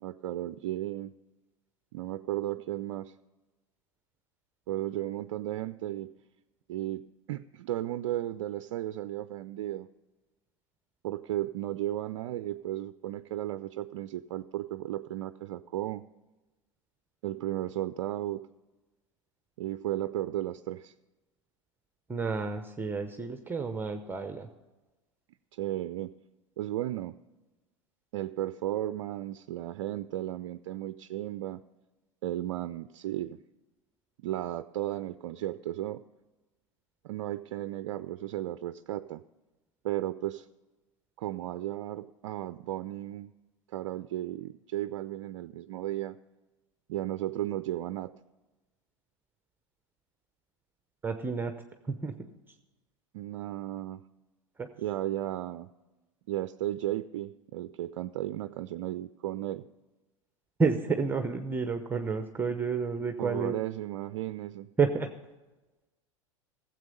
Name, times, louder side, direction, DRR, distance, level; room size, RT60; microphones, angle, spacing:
voice 1, 0.0-1.1 1.9-3.1 4.7-6.1 6.7-7.0 7.3-9.9 11.0-16.0 17.2-18.5 19.6-20.9 25.5-26.1 26.6-27.2 28.1-31.6 32.2-33.4 34.2-36.0 37.0-39.2 39.8-40.5 41.2-43.3 43.7-46.2 46.9-48.1 53.1-54.0 54.8-55.7 56.3-59.6 63.2-64.7, right 14 dB, 55° right, 13 dB, 0.4 m, -34 dB
voice 2, 22.1-24.5 51.0-51.5 51.9-52.3 54.6-54.7 60.6-63.5 64.8-65.1, right 4 dB, 10° right, 8 dB, 0.8 m, -30 dB
16.5 x 7.7 x 5.3 m, 1.1 s
figure-of-eight pair, 85°, 16 cm